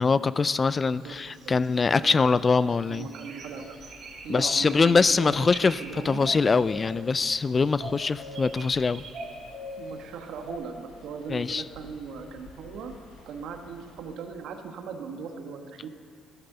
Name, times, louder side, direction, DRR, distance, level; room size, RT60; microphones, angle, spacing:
voice 1, 0.0-3.1 4.3-5.8 6.0-9.0 11.3-11.6, left 4 dB, 30° left, 17 dB, 0.3 m, -23 dB
sound 1, 1.0-2.3 2.7-4.3 4.7-5.0 5.4-5.9 6.1-7.4 7.8-9.9 10.5-10.6, right 1 dB, 50° right, 4.0 m, -42 dB
voice 2, 1.0-1.5 1.9-2.2 2.9-3.8 4.2-6.3 9.8-12.9 13.2-15.9, right 5 dB, 75° right, 5 dB, 1.4 m, -39 dB
sound 2, 3.5-14.5, left 3 dB, 90° left, 4.0 m, -54 dB
13.0 x 12.0 x 6.7 m, 2.2 s
cardioid pair, 110°, 0 cm